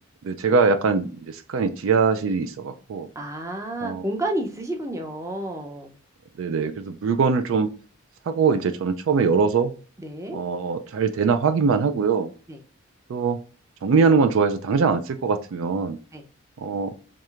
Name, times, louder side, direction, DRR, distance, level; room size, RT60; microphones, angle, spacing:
voice 1, 0.2-3.1 3.8-4.0 6.4-7.7 8.3-9.7 10.3-12.3 13.1-13.4 13.8-16.0 16.6-16.9, right 5 dB, 70° right, 0.4 m, -22 dB
voice 2, 3.2-5.9 10.0-10.4 12.5-12.6 16.1-16.2, right 1 dB, 15° right, 0.5 m, -30 dB
4.6 x 3.2 x 2.4 m
head